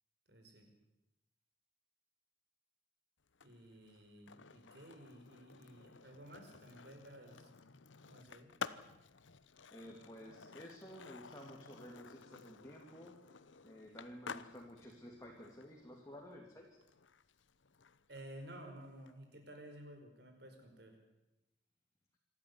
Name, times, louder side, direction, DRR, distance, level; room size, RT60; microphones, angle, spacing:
voice 1, 0.3-0.7 3.4-7.5 8.0-8.5 18.1-21.0, right 1 dB, 60° right, 4 dB, 5.1 m, -54 dB
Skateboard, 3.3-19.1, left 5 dB, 90° left, 0.9 m, -53 dB
voice 2, 9.7-13.2 13.6-16.8, equal, 15° left, -1 dB, 2.6 m, -53 dB
26.5 x 13.0 x 9.5 m, 0.92 s
head